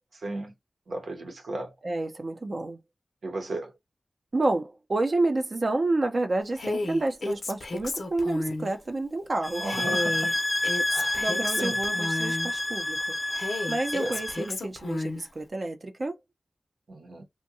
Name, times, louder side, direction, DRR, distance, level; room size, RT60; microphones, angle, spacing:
voice 1, 0.2-0.5 0.9-1.7 3.2-3.7 9.6-10.3 10.9-11.2 11.6-11.7 13.5-13.6 14.0-14.1 16.9-17.2, right 2 dB, 90° right, 0.8 m, -35 dB
voice 2, 1.8-2.8 4.3-9.6 11.2-13.0 13.7-16.2, right 2 dB, 55° right, 0.6 m, -29 dB
Female speech woman speaking, 6.6-8.7 9.6-12.5 13.3-15.2, left 2 dB, 75° left, 0.6 m, -32 dB
sound 1, 9.4-14.5, left 1 dB, 25° left, 0.4 m, -29 dB
2.7 x 2.1 x 2.7 m
cardioid pair, 50°, 0 cm